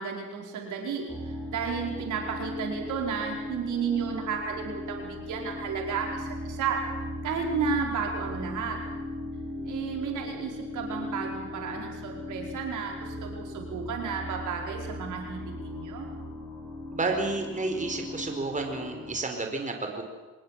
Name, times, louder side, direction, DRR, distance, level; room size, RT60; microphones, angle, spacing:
voice 1, 0.0-6.8 7.2-8.8 9.6-16.1, right 6 dB, 80° right, 1 dB, 4.9 m, -32 dB
sound 1, 1.1-19.2, left 1 dB, 10° left, 6.2 m, -38 dB
voice 2, 16.9-20.0, right 3 dB, 25° right, 4 dB, 4.4 m, -30 dB
24.0 x 19.0 x 7.5 m, 1.2 s
cardioid pair, 90°, 30 cm